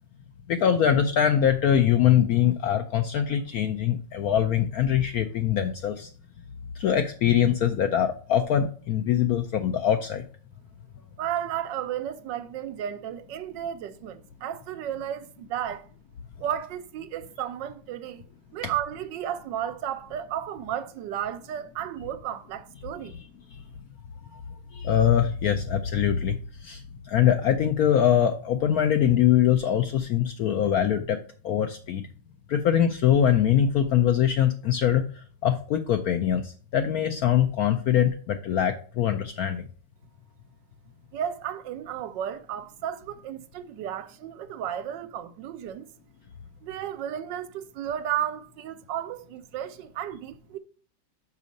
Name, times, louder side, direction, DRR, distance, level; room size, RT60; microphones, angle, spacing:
voice 1, 0.5-6.1 6.8-10.2 24.7-31.2 31.4-32.0 32.5-39.6, left 9 dB, 75° left, 0.8 m, -23 dB
voice 2, 11.2-15.9 16.4-18.2 18.5-23.1 41.1-45.8 46.6-50.6, right 10 dB, 75° right, 1.2 m, -33 dB
5.5 x 5.1 x 5.2 m
omnidirectional pair, 2.0 m